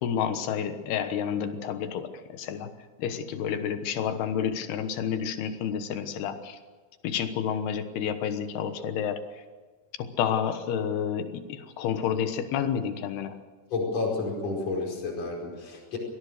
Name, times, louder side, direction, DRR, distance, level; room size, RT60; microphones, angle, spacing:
voice 1, 0.0-2.7 3.0-6.6 7.0-9.4 10.0-13.4, left 8 dB, 75° left, 9 dB, 3.2 m, -30 dB
voice 2, 13.7-16.0, left 3 dB, 40° left, -1 dB, 5.8 m, -30 dB
24.5 x 18.0 x 6.6 m, 1.5 s
omnidirectional pair, 4.9 m